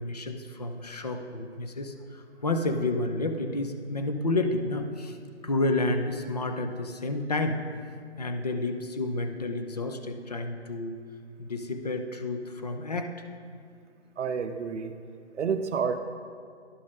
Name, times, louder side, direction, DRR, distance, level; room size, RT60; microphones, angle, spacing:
voice 1, 0.0-5.2 5.4-7.6 8.2-11.0 11.4-13.1, left 2 dB, 35° left, 6 dB, 0.4 m, -30 dB
voice 2, 14.2-14.9 15.3-16.0, right 6 dB, 90° right, 7 dB, 0.6 m, -29 dB
11.0 x 4.2 x 3.6 m, 2.2 s
hypercardioid pair, 155°, 35 cm